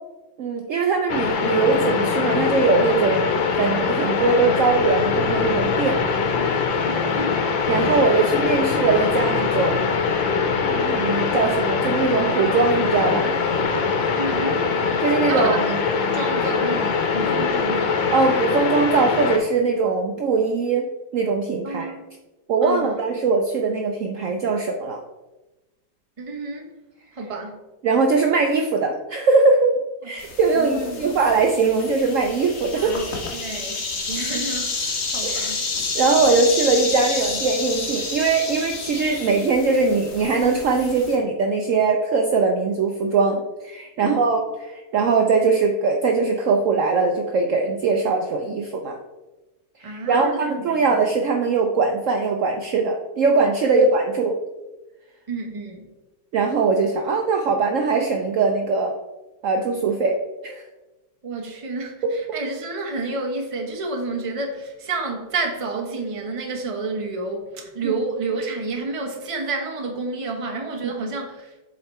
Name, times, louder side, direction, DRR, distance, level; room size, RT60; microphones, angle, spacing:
voice 1, 0.4-6.0 7.7-9.9 10.6-13.3 15.0-15.8 18.1-20.9 21.1-21.9 22.5-25.0 27.8-29.7 30.0-32.9 35.2-35.6 35.9-49.0 49.8-54.4 56.3-58.9 59.4-60.2 60.4-60.6 67.8-67.9 71.0-71.1, right 4 dB, 80° right, 3 dB, 0.7 m, -21 dB
sound 1, 1.1-19.4, left 5 dB, 90° left, 1.6 m, -22 dB
voice 2, 6.8-7.4 14.1-14.7 15.3-15.7 16.1-18.1 21.6-22.0 22.6-23.0 26.2-26.7 27.1-27.6 30.0-30.1 30.5-31.1 32.7-33.1 33.3-35.6 44.0-44.4 49.8-50.9 53.6-53.9 55.3-55.9 61.2-71.5, right 3 dB, 30° right, 1 dB, 0.6 m, -30 dB
sound 2, 30.2-41.2, left 3 dB, 45° left, 1.5 m, -29 dB
7.8 x 3.8 x 4.3 m, 1.1 s
omnidirectional pair, 2.0 m